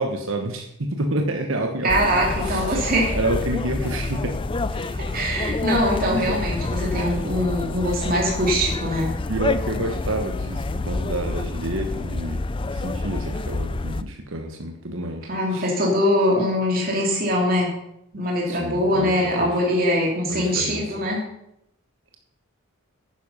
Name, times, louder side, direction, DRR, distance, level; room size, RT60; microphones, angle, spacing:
voice 1, 0.0-1.9 2.4-4.4 4.7-5.1 6.1-6.3 9.3-15.7 18.5-19.5 20.3-20.9, right 1 dB, 65° right, 3 dB, 1.2 m, -29 dB
voice 2, 1.8-3.1 5.1-9.1 15.3-17.7 18.1-21.2, equal, 40° right, -2 dB, 2.8 m, -22 dB
sound 1, 1.9-14.0, left 2 dB, 25° left, 0.4 m, -28 dB
10.0 x 9.8 x 5.6 m, 0.78 s
head